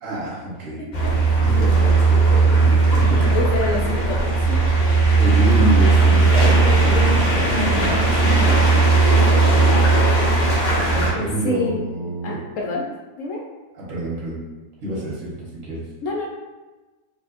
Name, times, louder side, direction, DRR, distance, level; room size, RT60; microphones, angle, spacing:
voice 1, 0.0-0.8 1.4-3.3 5.1-9.7 11.1-12.4 13.7-14.4 14.8-15.8, right 1 dB, 55° right, -6 dB, 1.6 m, -27 dB
voice 2, 0.8-1.1 3.3-4.7 11.4-11.8 12.2-12.8 13.2-13.4 16.0-16.3, left 2 dB, 65° left, -2 dB, 0.9 m, -27 dB
sound 1, 0.9-11.1, right 3 dB, 45° left, 0.6 m, -16 dB
4.4 x 2.8 x 2.5 m, 1.2 s
omnidirectional pair, 1.6 m